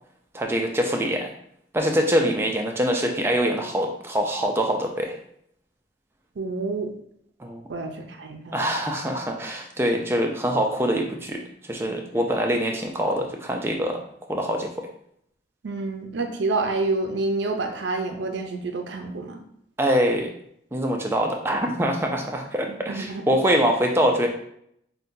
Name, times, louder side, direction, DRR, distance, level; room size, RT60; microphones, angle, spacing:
voice 1, 0.3-1.3 1.7-5.1 7.4-7.6 8.5-11.4 11.7-14.0 14.3-14.7 19.8-20.3 20.7-24.3, equal, 15° right, 2 dB, 0.4 m, -24 dB
voice 2, 6.4-6.9 7.7-8.6 15.6-19.4 22.7-23.4, right 3 dB, 75° right, 4 dB, 0.5 m, -28 dB
5.4 x 2.2 x 2.6 m, 0.71 s
head